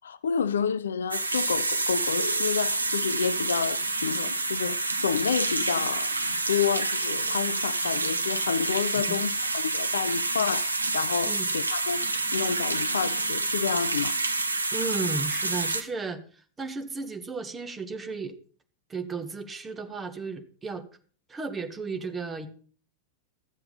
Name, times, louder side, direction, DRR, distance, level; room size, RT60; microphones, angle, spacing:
voice 1, 0.0-6.1 6.5-12.1 12.3-14.2, left 7 dB, 70° left, 0.5 m, -29 dB
sound 1, 1.1-15.8, right 2 dB, 80° right, 1.0 m, -28 dB
voice 2, 14.7-18.4 18.9-20.8 21.3-22.5, right 4 dB, 15° right, 1.5 m, -34 dB
13.0 x 7.7 x 5.5 m
figure-of-eight pair, 90°, 0 cm